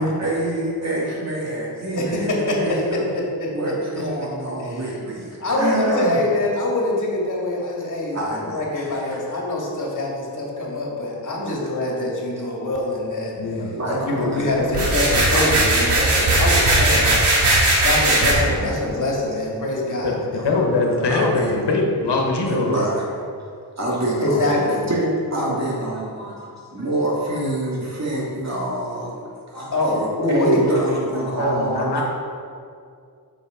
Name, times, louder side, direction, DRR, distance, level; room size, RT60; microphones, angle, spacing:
voice 1, 0.0-3.0 3.5-6.2 8.1-9.2 11.4-11.6 13.8-14.5 15.3-15.5 16.6-16.7 18.5-18.7 20.9-21.5 22.5-23.0 23.4-23.5 23.8-32.0, right 1 dB, 40° right, -4 dB, 2.4 m, -26 dB
voice 2, 1.9-2.8 3.9-4.0 4.5-4.8 5.4-13.4 14.0-20.4 24.2-24.9 29.7-30.6, left 2 dB, 50° left, -3 dB, 2.3 m, -24 dB
voice 3, 13.4-15.1 20.0-22.9 31.2-32.0, left 3 dB, 80° left, 0 dB, 1.5 m, -23 dB
sound 1, 14.7-18.3, right 2 dB, 75° right, 2.5 m, -18 dB
8.5 x 6.9 x 5.0 m, 2.3 s
wide cardioid pair, 105°, 40 cm